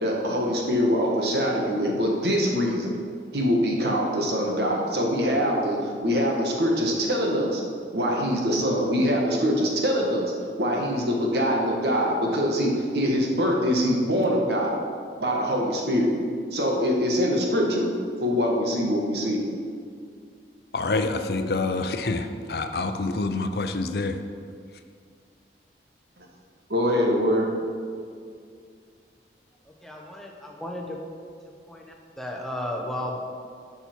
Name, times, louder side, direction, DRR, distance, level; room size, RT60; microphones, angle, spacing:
voice 1, 0.0-2.9 3.3-7.6 7.9-10.3 10.6-14.8 15.2-16.1 16.5-17.9 18.2-19.4 26.7-27.5, equal, 70° right, -1 dB, 1.6 m, -24 dB
voice 2, 20.7-24.2, left 3 dB, 65° left, 7 dB, 0.6 m, -27 dB
voice 3, 29.8-31.0 31.7-33.2, left 1 dB, ahead, -1 dB, 0.9 m, -34 dB
11.5 x 5.7 x 4.6 m, 2.2 s
head